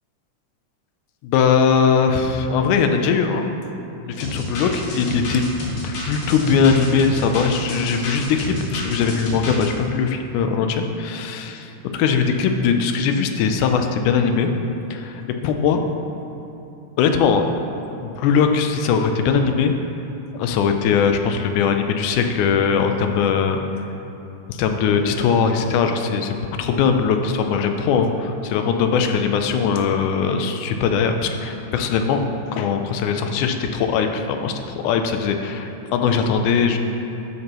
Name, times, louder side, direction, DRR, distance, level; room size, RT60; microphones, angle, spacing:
voice 1, 1.2-3.5 4.0-5.4 5.8-11.6 11.9-14.5 14.9-15.8 17.0-17.4 18.0-19.7 20.3-23.6 24.5-32.2 32.5-36.8, left 6 dB, 85° left, 5 dB, 2.1 m, -20 dB
sound 1, 4.2-9.7, left 2 dB, 70° left, 2.7 m, -30 dB
12.0 x 6.6 x 3.0 m, 3.0 s
omnidirectional pair, 3.5 m